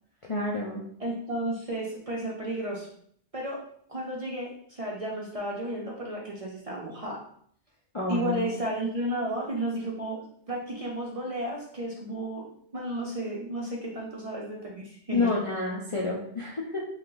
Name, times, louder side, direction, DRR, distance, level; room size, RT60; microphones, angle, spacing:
voice 1, 0.2-0.8 7.9-8.5 15.1-16.9, left 3 dB, 40° left, -4 dB, 0.4 m, -29 dB
voice 2, 1.0-2.9 3.3-3.6 3.9-7.2 8.1-10.2 10.5-12.5 12.7-15.3, right 1 dB, 40° right, -3 dB, 0.6 m, -33 dB
3.1 x 2.8 x 3.8 m, 0.63 s
omnidirectional pair, 1.2 m